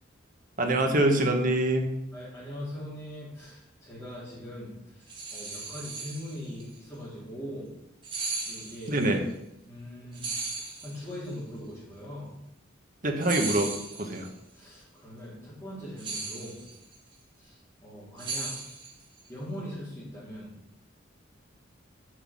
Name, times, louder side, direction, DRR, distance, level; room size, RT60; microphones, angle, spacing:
voice 1, 0.6-1.9 8.9-9.2 13.0-13.7 14.0-14.3, right 1 dB, 45° right, 3 dB, 1.4 m, -24 dB
voice 2, 2.1-7.7 8.4-8.9 9.7-12.3 14.5-16.6 17.4-18.5 19.3-20.5, equal, 15° left, -12 dB, 3.6 m, -41 dB
sound 1, 5.1-6.6 8.0-9.1 10.1-11.3 13.2-14.3 16.0-17.0 18.2-19.2, right 3 dB, 25° right, 1.9 m, -36 dB
8.0 x 5.9 x 7.5 m, 0.85 s
head